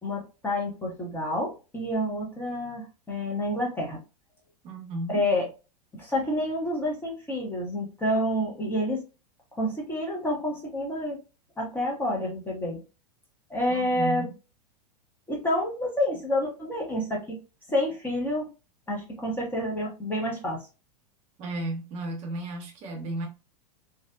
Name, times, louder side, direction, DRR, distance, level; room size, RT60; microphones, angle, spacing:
voice 1, 0.0-4.0 5.1-5.5 5.9-9.0 9.5-11.2 11.6-12.8 13.5-14.3 15.3-17.4 17.7-18.5 18.9-20.6, left 1 dB, 10° left, 0.6 m, -28 dB
voice 2, 4.6-5.2 13.6-14.3 21.4-23.3, right 2 dB, 30° right, 0.7 m, -34 dB
2.5 x 2.1 x 2.3 m
figure-of-eight pair, 95°, 21 cm